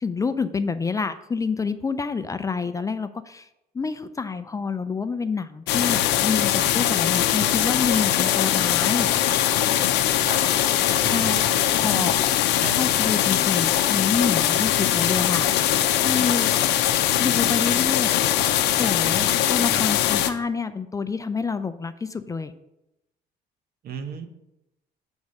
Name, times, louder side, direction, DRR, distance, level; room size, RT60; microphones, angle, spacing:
voice 1, 0.0-3.5 3.7-9.1 11.0-11.4 11.7-12.1 12.7-15.5 16.0-16.5 17.2-18.1 18.8-22.5, left 5 dB, 20° left, 11 dB, 0.4 m, -27 dB
sound 1, 5.7-20.3, left 12 dB, 90° left, 0.6 m, -21 dB
voice 2, 11.0-12.3 12.6-12.8 19.7-19.9 23.8-24.3, right 6 dB, 65° right, 9 dB, 0.9 m, -35 dB
8.2 x 3.5 x 6.3 m, 0.87 s
cardioid pair, 110°, 17 cm